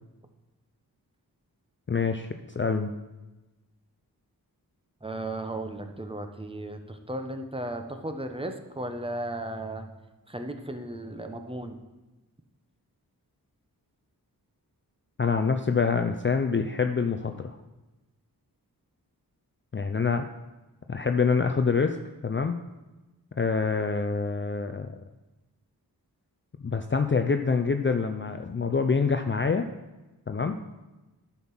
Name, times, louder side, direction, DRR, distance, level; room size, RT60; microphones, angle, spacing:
voice 1, 1.9-2.3 2.6-2.9 15.2-17.5 19.7-20.3 20.9-22.0 22.2-22.6 23.4-24.9 26.6-29.7 30.3-30.6, left 5 dB, 30° left, 6 dB, 0.5 m, -26 dB
voice 2, 5.0-9.9 10.3-11.8, right 1 dB, 15° right, 6 dB, 1.0 m, -35 dB
9.3 x 5.7 x 6.1 m, 1.1 s
cardioid pair, 55°, 39 cm